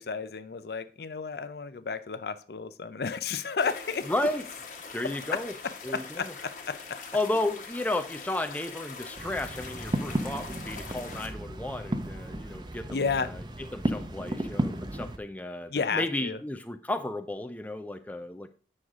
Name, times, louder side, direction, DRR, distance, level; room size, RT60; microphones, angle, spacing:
voice 1, 0.0-4.1 5.0-5.4 5.9-7.0 12.9-13.3 15.7-16.4, left 5 dB, 60° left, 13 dB, 0.5 m, -32 dB
sound 1, 3.6-11.3, left 4 dB, 45° left, 1.2 m, -43 dB
voice 2, 4.1-4.4 4.9-5.5 5.8-6.3 7.1-13.4 13.7-18.5, left 1 dB, 10° left, 8 dB, 0.4 m, -33 dB
sound 2, 9.2-15.2, right 1 dB, 25° right, 0.7 m, -34 dB
7.9 x 6.3 x 3.6 m, 0.38 s
head